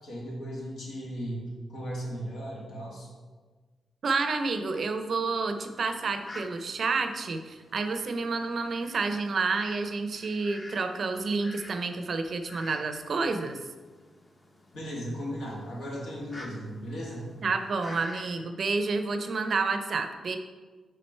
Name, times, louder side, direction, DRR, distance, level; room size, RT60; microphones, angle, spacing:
voice 1, 0.0-3.1 14.7-17.3, equal, 80° left, -4 dB, 1.7 m, -36 dB
voice 2, 4.0-13.6 17.4-20.4, right 4 dB, 55° right, 7 dB, 0.5 m, -29 dB
Fowl, 4.7-18.4, left 1 dB, 25° left, 0.7 m, -50 dB
5.0 x 4.3 x 4.3 m, 1.4 s
cardioid pair, 75°, 0 cm